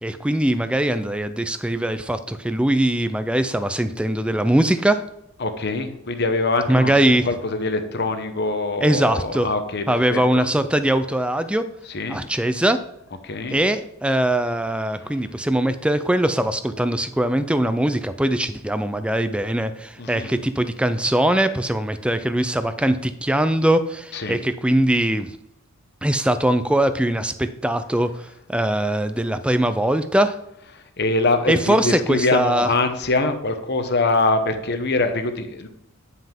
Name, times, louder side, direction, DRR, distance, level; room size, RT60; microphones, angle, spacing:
voice 1, 0.0-5.0 6.7-7.3 8.8-9.5 9.9-11.7 12.1-12.8 13.5-25.4 26.0-30.4 31.5-32.7, right 1 dB, 5° right, 11 dB, 0.4 m, -21 dB
voice 2, 5.4-10.5 11.9-12.2 13.2-13.6 20.0-20.4 24.1-24.4 31.0-35.7, left 2 dB, 50° left, 7 dB, 0.9 m, -24 dB
9.6 x 5.6 x 3.6 m, 0.80 s
head